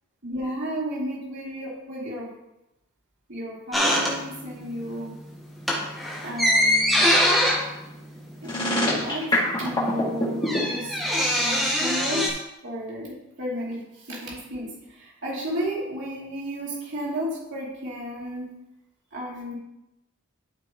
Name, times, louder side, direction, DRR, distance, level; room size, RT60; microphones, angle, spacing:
voice 1, 0.2-2.3 3.3-5.1 6.2-7.1 8.4-11.0 11.4-18.4 19.1-19.5, equal, 55° right, -6 dB, 3.1 m, -33 dB
sound 1, 3.7-4.7 5.0-5.2 5.5-9.0 9.3-9.4 9.6-12.3, equal, ahead, 1.3 m, -23 dB
sound 2, 8.4-10.6, left 2 dB, 20° left, 2.1 m, -24 dB
12.0 x 5.5 x 3.1 m, 0.92 s
head